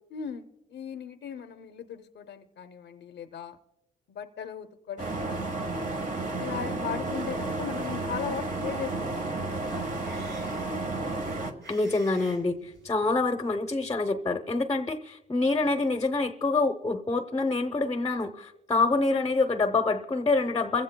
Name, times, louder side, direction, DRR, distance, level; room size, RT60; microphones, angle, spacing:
voice 1, 0.1-3.6 4.1-5.9 6.4-9.7, left 7 dB, 75° left, 8 dB, 0.6 m, -38 dB
sound 1, 5.0-11.5, right 2 dB, 45° right, 1.4 m, -32 dB
sound 2, 9.6-13.2, right 3 dB, 80° right, 6.8 m, -50 dB
voice 2, 11.7-20.8, left 3 dB, 20° left, 6 dB, 0.7 m, -26 dB
28.0 x 16.0 x 2.2 m, 0.97 s
wide cardioid pair, 135°, 18 cm